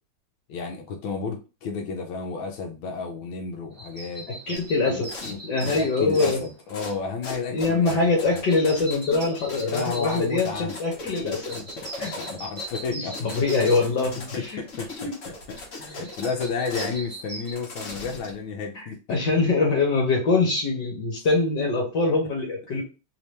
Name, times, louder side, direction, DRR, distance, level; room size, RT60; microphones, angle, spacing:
voice 1, 0.5-4.3 4.9-8.4 9.6-10.8 11.2-11.4 11.8-13.3 13.6-13.8 14.3-19.2, left 5 dB, 90° left, 1.4 m, -32 dB
sound 1, 3.7-17.5, right 2 dB, 40° right, 1.3 m, -42 dB
voice 2, 4.5-6.4 7.5-11.6 12.0-12.1 12.9-14.6 15.0-15.1 18.7-18.8 19.1-22.8, left 3 dB, 65° left, 1.6 m, -24 dB
sound 2, 4.5-4.7 5.0-5.4 5.6-6.4 6.7-7.0 7.2-17.0 17.5-18.4, left 2 dB, 45° left, 1.3 m, -38 dB
3.5 x 2.8 x 3.2 m
omnidirectional pair, 2.2 m